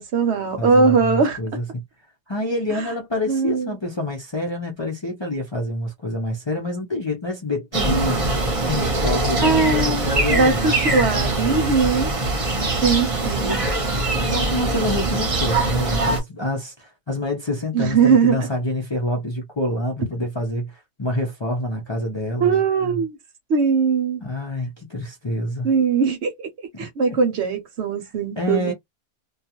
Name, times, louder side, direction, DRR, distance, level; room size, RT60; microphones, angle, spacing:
voice 1, 0.0-1.4 2.7-2.9 3.3-3.8 9.4-12.1 12.8-13.7 17.7-18.5 22.4-23.2 23.5-24.2 25.6-26.5 26.8-28.7, right 5 dB, 70° right, 1.0 m, -20 dB
voice 2, 0.6-1.8 2.3-8.2 8.6-11.7 13.4-23.0 24.2-25.7 27.1-27.2 28.4-28.7, left 1 dB, 35° left, 0.5 m, -27 dB
sound 1, 7.7-16.2, right 2 dB, 30° right, 0.8 m, -22 dB
2.3 x 2.3 x 2.8 m
omnidirectional pair, 1.2 m